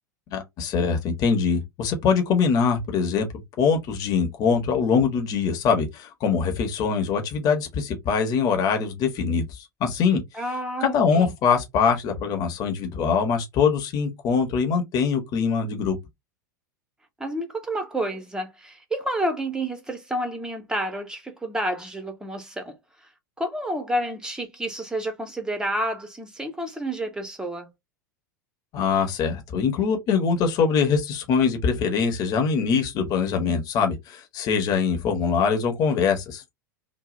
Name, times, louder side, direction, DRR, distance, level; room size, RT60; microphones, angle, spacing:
voice 1, 0.3-3.3 3.6-10.2 10.8-16.0 28.7-36.4, left 6 dB, 40° left, 1.0 m, -23 dB
voice 2, 10.3-11.3 17.2-22.7 23.4-27.7, right 1 dB, 5° right, 0.8 m, -29 dB
2.6 x 2.0 x 3.6 m
figure-of-eight pair, 85°, 10 cm